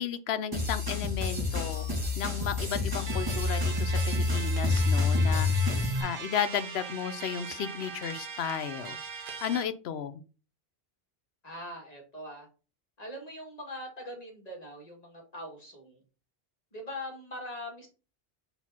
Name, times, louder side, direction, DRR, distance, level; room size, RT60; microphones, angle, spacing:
voice 1, 0.0-1.9 2.1-5.7 6.0-10.2, left 8 dB, 80° left, 14 dB, 0.8 m, -34 dB
sound 1, 0.5-6.0, left 3 dB, 20° right, 1.9 m, -28 dB
sound 2, 3.1-9.6, right 5 dB, 55° right, 1.0 m, -41 dB
voice 2, 11.4-12.5 13.0-16.0 16.7-17.9, left 1 dB, 40° left, 1 dB, 1.9 m, -42 dB
4.5 x 4.0 x 5.7 m, 0.36 s
omnidirectional pair, 1.1 m